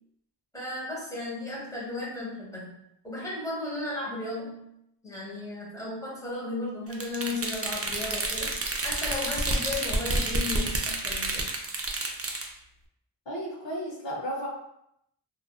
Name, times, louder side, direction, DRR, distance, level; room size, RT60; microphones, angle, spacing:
voice 1, 0.5-4.6 5.0-8.6 8.8-11.5, left 2 dB, 10° left, -5 dB, 1.0 m, -35 dB
sound 1, 6.9-12.5, right 2 dB, 35° right, 0.4 m, -29 dB
voice 2, 13.3-14.5, equal, 75° left, -3 dB, 0.7 m, -33 dB
2.5 x 2.4 x 2.3 m, 0.76 s
wide cardioid pair, 45°, 45 cm